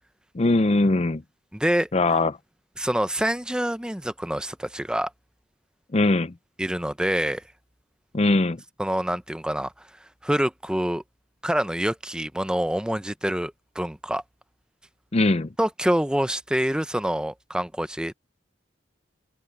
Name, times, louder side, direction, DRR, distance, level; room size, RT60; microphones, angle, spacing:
voice 1, 0.3-1.2 1.9-2.4 5.9-6.3 8.1-8.6 15.1-15.5, left 2 dB, 35° left, 0.6 m, -21 dB
voice 2, 1.5-1.9 2.8-5.1 6.6-7.4 8.8-9.7 10.2-11.0 11.4-14.2 15.6-18.1, right 1 dB, 5° right, 0.8 m, -26 dB
head